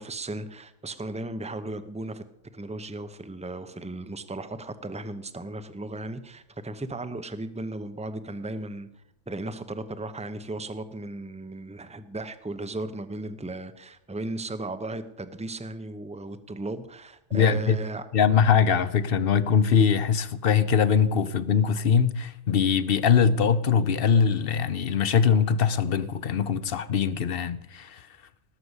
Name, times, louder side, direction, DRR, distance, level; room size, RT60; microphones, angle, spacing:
voice 1, 0.0-2.2 2.5-8.9 9.3-18.1, right 2 dB, 5° right, 0.6 m, -36 dB
voice 2, 17.3-17.8 18.1-28.0, left 7 dB, 50° left, 0.9 m, -22 dB
18.0 x 6.9 x 8.1 m
omnidirectional pair, 1.4 m